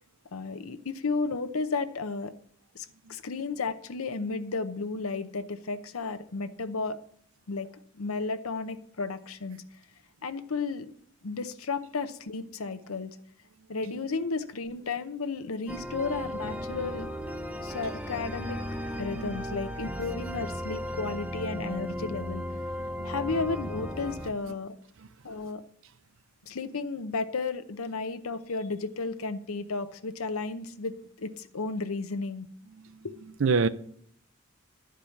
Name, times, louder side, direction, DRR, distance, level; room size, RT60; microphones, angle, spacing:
voice 1, 0.3-2.3 2.7-7.0 7.5-7.7 7.9-9.6 10.2-10.9 11.2-13.2 13.7-17.1 17.6-18.6 19.0-22.4 23.0-24.7 25.2-25.6 26.5-32.5 33.0-33.1, left 4 dB, 85° left, 0.7 m, -33 dB
sound 1, 15.7-24.3, equal, 5° right, 0.6 m, -36 dB
voice 2, 17.6-18.0 19.0-19.3 22.8-23.2 25.0-25.1 32.7-33.1 33.4-33.7, right 5 dB, 65° right, 0.5 m, -30 dB
11.5 x 4.9 x 7.0 m
head